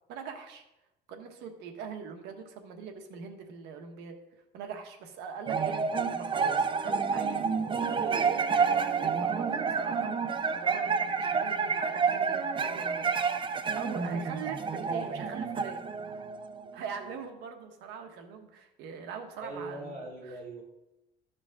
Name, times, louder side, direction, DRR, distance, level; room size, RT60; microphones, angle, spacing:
voice 1, 0.1-0.6 1.1-4.2 4.5-5.8 6.1-7.5 7.8-8.4 9.0-10.1 10.5-13.1 13.7-15.8 16.7-20.0, right 6 dB, 90° right, 5 dB, 1.2 m, -42 dB
sound 1, 5.5-17.0, right 5 dB, 30° right, 0.6 m, -29 dB
voice 2, 19.4-20.6, right 2 dB, 45° right, -5 dB, 3.6 m, -40 dB
13.5 x 5.3 x 3.6 m, 0.93 s
cardioid pair, 110°, 17 cm